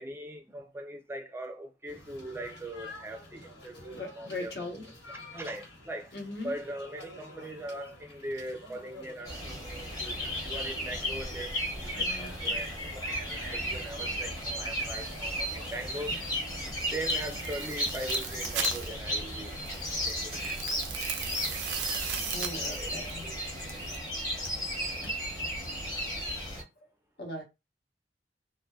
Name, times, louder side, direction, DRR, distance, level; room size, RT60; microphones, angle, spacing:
voice 1, 0.0-4.8 5.3-16.2 16.9-19.6 20.0-20.5 22.6-22.9 23.2-23.4, right 1 dB, 15° right, 0.4 m, -41 dB
sound 1, 1.9-20.3, left 1 dB, 80° left, 1.2 m, -50 dB
voice 2, 3.9-4.8 6.1-6.5 12.0-12.4 22.3-23.3 25.0-25.1 27.2-27.4, left 2 dB, 60° left, 0.9 m, -39 dB
sound 2, 9.2-26.6, equal, 20° left, 0.9 m, -34 dB
sound 3, 14.8-24.0, right 9 dB, 80° right, 0.4 m, -40 dB
2.6 x 2.1 x 2.3 m
head